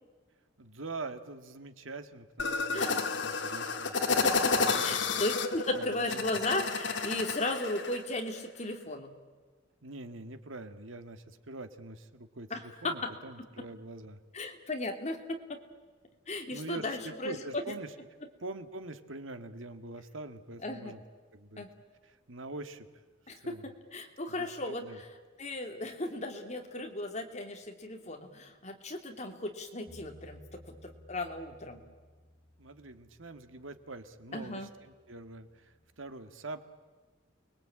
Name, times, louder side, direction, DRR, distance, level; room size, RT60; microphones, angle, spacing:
voice 1, 0.6-4.1 4.5-5.2 5.8-6.3 9.8-14.2 16.5-17.9 18.4-21.0 21.3-21.6 22.3-22.9 23.4-23.7 24.4-25.0 32.6-36.6, right 2 dB, 90° right, 9 dB, 1.8 m, -44 dB
sound 1, 2.4-8.0, left 4 dB, 65° left, 1.9 m, -31 dB
voice 2, 2.7-3.0 4.2-4.5 4.8-9.1 12.5-13.1 14.3-15.6 16.3-17.8 20.6-20.9 21.6-21.7 23.3-25.1 25.4-31.8 34.3-34.7, left 2 dB, 35° left, 4 dB, 2.9 m, -36 dB
Bass guitar, 29.9-36.1, equal, 5° left, 7.4 m, -58 dB
29.5 x 22.0 x 8.9 m, 1.4 s
head